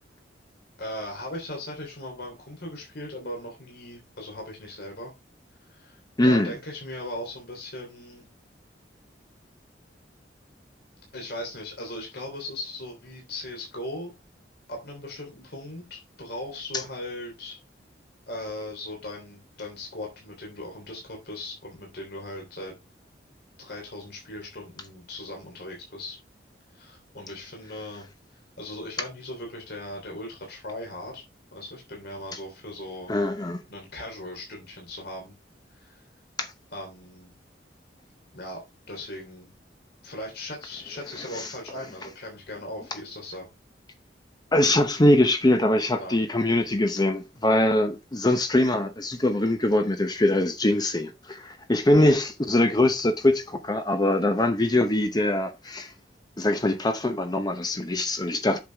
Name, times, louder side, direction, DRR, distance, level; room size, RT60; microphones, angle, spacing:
voice 1, 0.8-5.1 5.7-8.3 11.1-14.1 14.7-17.6 18.3-22.7 23.6-26.2 26.7-28.1 28.6-31.2 31.5-33.1 33.7-35.3 35.7-36.0 36.7-37.3 38.3-38.6 38.9-39.5 40.0-43.4 46.0-46.2 51.9-52.2, left 1 dB, 60° left, 3.2 m, -38 dB
voice 2, 6.2-6.5 33.1-33.6 41.3-41.5 44.5-55.9 56.4-58.6, left 1 dB, 25° left, 0.8 m, -22 dB
8.2 x 6.5 x 3.5 m
head